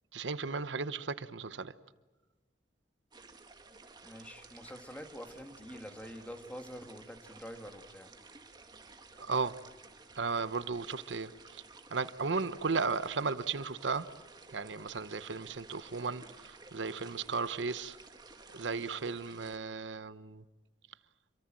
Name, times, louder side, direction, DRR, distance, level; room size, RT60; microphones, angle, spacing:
voice 1, 0.1-1.7 9.2-9.5 10.2-11.6 11.9-14.1 14.5-18.0 18.5-20.4, right 4 dB, 90° right, 0.9 m, -35 dB
sound 1, 3.1-19.6, right 3 dB, 25° right, 2.0 m, -54 dB
voice 2, 4.0-8.1, equal, 10° left, 1.9 m, -46 dB
27.0 x 24.5 x 7.6 m
head